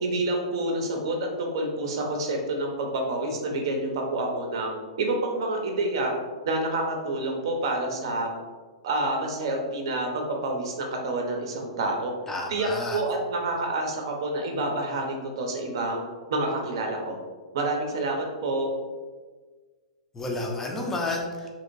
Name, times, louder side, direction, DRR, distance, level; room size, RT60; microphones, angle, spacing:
voice 1, 0.0-4.7 5.0-6.1 6.5-8.3 8.8-12.1 12.5-16.0 16.3-17.2 17.5-18.7, right 2 dB, 55° right, 2 dB, 0.6 m, -28 dB
voice 2, 12.3-13.0 20.1-21.5, left 2 dB, 10° left, 0 dB, 0.5 m, -31 dB
2.9 x 2.8 x 2.6 m, 1.4 s
figure-of-eight pair, 105°, 3 cm